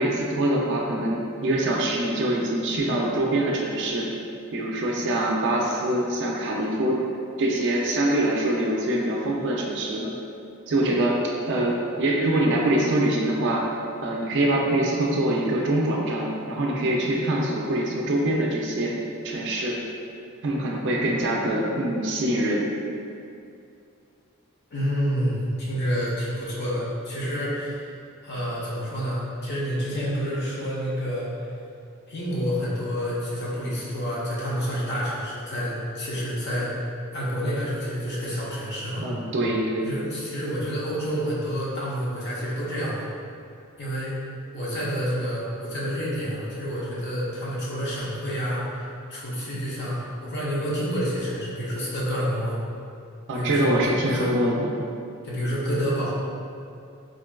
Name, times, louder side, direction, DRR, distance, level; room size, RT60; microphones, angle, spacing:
voice 1, 0.0-4.1 4.5-7.0 7.4-10.1 10.7-11.2 11.5-13.6 14.0-18.9 19.2-19.8 20.4-22.7 39.0-39.9 53.3-54.7, right 1 dB, 55° right, -2 dB, 0.4 m, -24 dB
voice 2, 24.7-27.9 28.2-31.3 32.1-36.7 37.1-39.1 39.8-43.1 43.8-44.2 44.5-48.8 49.1-52.6 53.3-54.3 55.2-56.1, equal, 50° left, -7 dB, 0.6 m, -28 dB
3.7 x 2.3 x 2.2 m, 2.5 s
head